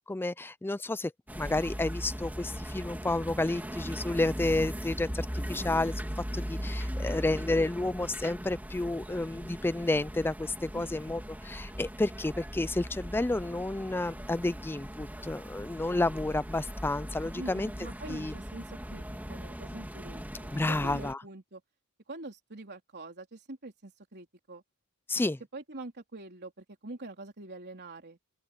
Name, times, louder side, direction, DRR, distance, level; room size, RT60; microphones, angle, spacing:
voice 1, 0.1-5.9 6.3-17.7 18.1-18.3 20.5-21.2 25.1-25.4, left 2 dB, 10° left, 0.3 m, -31 dB
sound 1, 1.3-21.1, equal, 10° right, 3.4 m, -39 dB
voice 2, 17.4-21.6 22.1-24.6 25.5-28.2, right 2 dB, 50° right, 3.8 m, -45 dB
open air
head